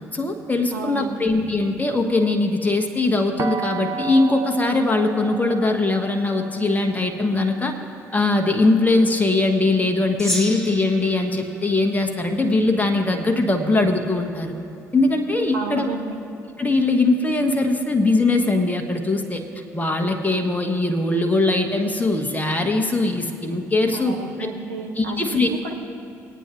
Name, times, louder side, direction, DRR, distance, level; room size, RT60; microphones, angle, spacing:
voice 1, 0.1-7.7 8.1-14.5 14.9-15.9 16.6-19.4 19.7-24.5 25.0-25.5, left 2 dB, 20° left, 3 dB, 1.3 m, -21 dB
voice 2, 0.7-1.3 15.5-16.1 23.9-25.7, right 4 dB, 80° right, 2 dB, 1.0 m, -32 dB
sound 1, 3.4-9.2, right 6 dB, 40° right, 0.8 m, -34 dB
Gong, 10.2-12.8, equal, 5° left, 1.9 m, -33 dB
20.0 x 8.9 x 3.0 m, 2.5 s
figure-of-eight pair, 45°, 9 cm